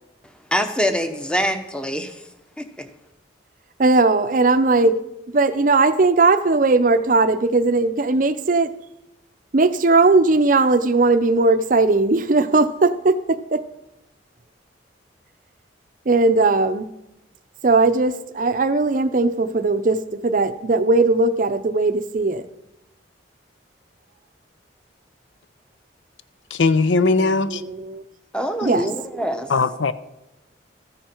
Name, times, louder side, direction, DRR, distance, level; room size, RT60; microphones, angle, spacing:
voice 1, 0.5-2.2 2.6-2.9 28.3-29.5, equal, 5° left, 8 dB, 0.8 m, -24 dB
voice 2, 3.8-5.0 5.3-8.7 9.5-13.6 16.1-16.9 17.6-20.0 20.2-22.4 27.2-28.0 28.6-29.0, right 3 dB, 45° right, 12 dB, 0.5 m, -18 dB
voice 3, 26.5-27.6 29.5-29.9, left 3 dB, 80° left, 14 dB, 0.6 m, -19 dB
13.5 x 10.0 x 4.4 m, 0.92 s
head